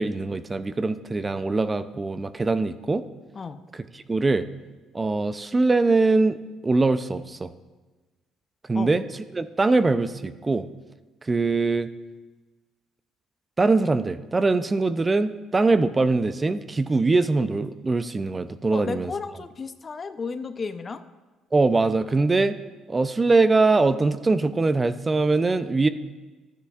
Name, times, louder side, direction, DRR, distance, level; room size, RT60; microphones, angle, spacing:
voice 1, 0.0-3.0 3.9-4.5 4.9-7.5 8.7-9.0 9.3-10.7 11.2-11.9 13.6-19.1 21.5-22.6 22.9-25.9, right 3 dB, 25° right, 12 dB, 0.4 m, -22 dB
voice 2, 18.7-21.0, left 4 dB, 35° left, 11 dB, 0.6 m, -33 dB
12.5 x 10.0 x 2.4 m, 1.2 s
supercardioid pair, 75°, 0 cm